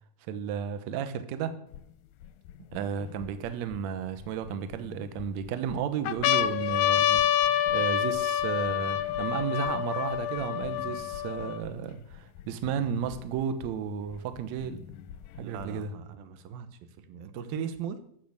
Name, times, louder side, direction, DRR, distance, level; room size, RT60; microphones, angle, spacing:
voice 1, 0.3-1.5 2.7-14.8 15.4-15.9, right 8 dB, 65° right, 10 dB, 2.0 m, -33 dB
sound 1, 1.7-1.8 2.5-3.8 4.5-5.2 5.7-5.8 6.1-11.7 12.4-12.5 12.7-13.7 14.6-15.6, left 11 dB, 75° left, 1.8 m, -27 dB
voice 2, 15.4-16.7 17.0-18.0, right 7 dB, 90° right, 10 dB, 2.9 m, -38 dB
14.5 x 6.4 x 8.0 m, 0.69 s
omnidirectional pair, 4.0 m